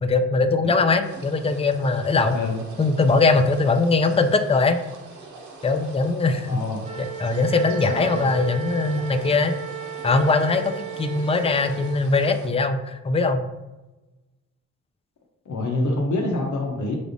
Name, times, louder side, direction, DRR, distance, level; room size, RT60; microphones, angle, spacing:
voice 1, 0.0-2.4 2.8-4.8 5.6-6.6 7.2-9.5 10.0-10.7 11.0-13.5, left 3 dB, 20° left, 7 dB, 0.4 m, -21 dB
sound 1, 1.0-12.5, right 3 dB, 75° right, 1.0 m, -43 dB
voice 2, 6.5-6.9 7.9-8.2 15.5-16.9, left 2 dB, 80° left, 0 dB, 0.8 m, -26 dB
Wind instrument woodwind instrument, 6.8-12.0, right 8 dB, 25° right, 0.8 m, -35 dB
5.9 x 3.4 x 2.6 m, 1.1 s
wide cardioid pair, 110°, 29 cm